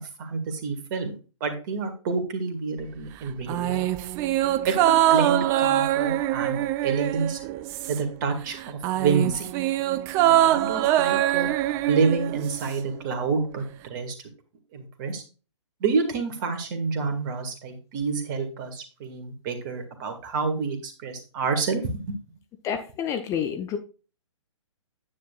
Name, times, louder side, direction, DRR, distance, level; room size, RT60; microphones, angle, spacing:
voice 1, 0.2-1.1 1.4-3.9 4.7-7.4 7.9-9.5 10.2-11.5 11.9-14.2 14.7-15.2 15.8-22.2, right 5 dB, 35° right, 7 dB, 2.0 m, -28 dB
sound 1, 3.5-8.2 8.5-12.8 13.1-13.2, right 13 dB, 15° right, 0.3 m, -23 dB
voice 2, 22.6-23.8, left 8 dB, 20° left, 7 dB, 0.7 m, -28 dB
9.7 x 8.6 x 2.4 m, 0.34 s
figure-of-eight pair, 125°, 16 cm